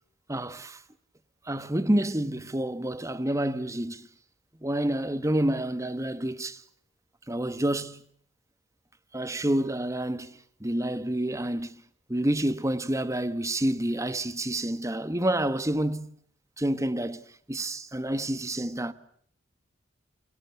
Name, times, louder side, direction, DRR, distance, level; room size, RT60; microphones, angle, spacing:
voice 1, 0.3-0.8 1.5-4.1 4.6-6.6 7.3-8.0 9.1-11.8 12.1-16.1 16.6-17.2 17.5-18.9, right 1 dB, 15° right, 1.3 m, -28 dB
29.5 x 22.5 x 8.2 m
head